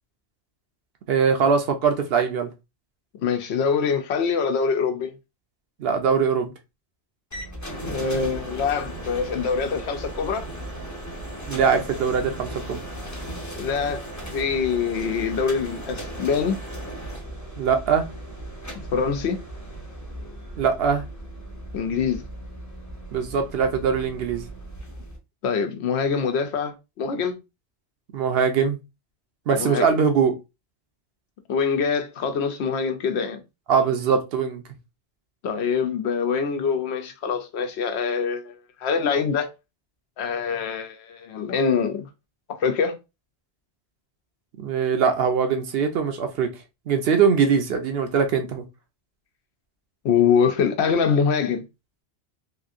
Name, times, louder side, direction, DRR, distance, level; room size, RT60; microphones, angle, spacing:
voice 1, 1.1-2.5 5.8-6.5 11.5-12.8 17.6-18.0 20.6-21.0 23.1-24.5 28.1-28.8 29.5-30.3 33.7-34.6 44.6-46.5 46.9-48.6, right 6 dB, 65° right, 0.8 m, -22 dB
voice 2, 3.2-5.1 7.8-10.5 13.6-16.6 18.9-19.4 21.7-22.2 25.4-27.4 29.6-30.0 31.5-33.4 35.4-39.5 40.2-42.1 42.6-43.0 50.0-51.6, left 6 dB, 75° left, 0.8 m, -24 dB
sound 1, 7.3-25.2, right 1 dB, 20° left, 0.6 m, -36 dB
3.0 x 2.6 x 2.4 m
omnidirectional pair, 1.2 m